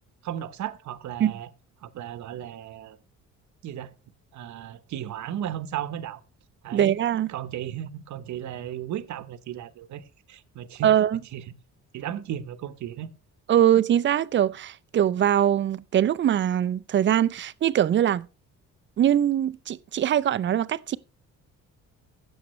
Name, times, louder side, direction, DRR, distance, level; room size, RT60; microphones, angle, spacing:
voice 1, 0.2-1.5 1.8-3.0 3.6-3.9 4.3-6.2 6.6-7.0 7.3-10.0 10.3-10.9 11.3-11.4 11.9-13.1, right 10 dB, 65° right, 0.9 m, -35 dB
voice 2, 6.7-7.3 10.8-11.2 13.5-18.3 19.0-21.0, right 10 dB, 40° right, 0.4 m, -22 dB
16.0 x 7.1 x 3.1 m
cardioid pair, 140°, 31 cm